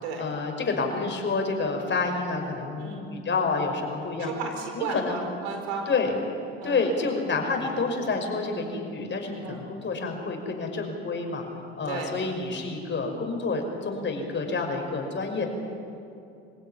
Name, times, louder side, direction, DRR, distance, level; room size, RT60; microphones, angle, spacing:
voice 1, 0.2-4.3 4.8-5.2 5.9-6.2 6.6-11.4 11.8-15.5, left 4 dB, 35° left, 3 dB, 5.6 m, -28 dB
voice 2, 2.8-3.1 4.2-5.9 6.6-6.8 9.4-9.7 11.8-12.1, right 4 dB, 85° right, 3 dB, 4.8 m, -34 dB
25.0 x 16.0 x 9.8 m, 2.6 s
hypercardioid pair, 70°, 31 cm